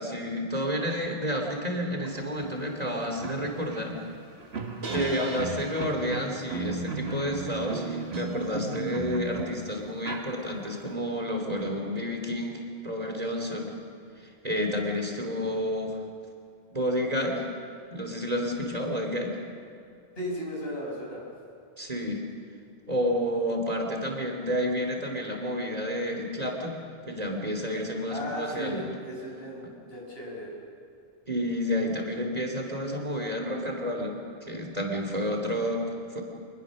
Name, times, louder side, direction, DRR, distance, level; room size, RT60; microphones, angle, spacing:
voice 1, 0.0-4.0 4.9-13.7 14.4-16.0 16.7-17.5 17.9-19.4 21.8-22.2 22.9-26.8 27.1-28.9 31.3-36.2, equal, 40° right, 1 dB, 3.1 m, -30 dB
sound 1, 2.4-2.5 2.8-10.9, right 3 dB, 85° right, 1.9 m, -35 dB
voice 2, 20.1-21.2 28.1-30.5, equal, 80° left, -3 dB, 6.6 m, -36 dB
25.5 x 20.5 x 6.4 m, 2.4 s
omnidirectional pair, 1.0 m